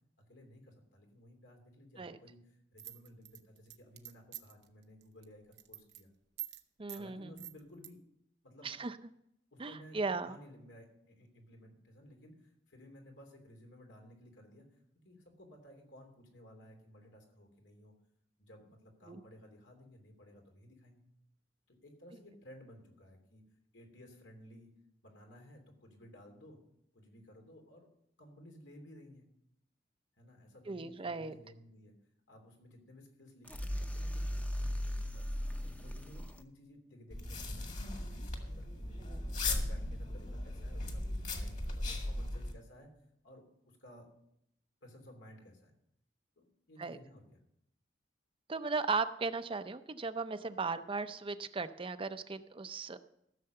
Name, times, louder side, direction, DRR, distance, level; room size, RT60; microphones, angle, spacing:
voice 1, 0.3-6.1 6.9-8.1 8.4-8.7 9.5-10.0 10.2-14.7 15.0-17.9 18.4-21.1 21.7-23.4 23.7-24.7 25.0-26.6 26.9-27.9 28.2-29.3 30.2-31.9 32.3-35.3 35.6-38.1 38.4-38.9 39.4-42.9 43.2-44.1 44.8-45.7 46.4-47.4, equal, 90° left, 2 dB, 3.0 m, -56 dB
sound 1, 2.8-4.6 5.0-5.2 5.5-6.0 6.4-6.6 6.9-7.0 7.4-7.9, right 13 dB, 65° right, 0.8 m, -45 dB
voice 2, 6.8-7.3 8.6-8.9 9.6-10.4 19.1-19.2 30.7-31.4 39.1-39.2 46.8-47.0 48.5-53.0, right 4 dB, 30° right, 11 dB, 0.5 m, -37 dB
sound 2, 33.4-36.4, equal, 10° left, 0.7 m, -37 dB
sound 3, 37.1-42.5, left 2 dB, 45° left, 1.9 m, -37 dB
14.5 x 6.8 x 6.6 m, 0.76 s
head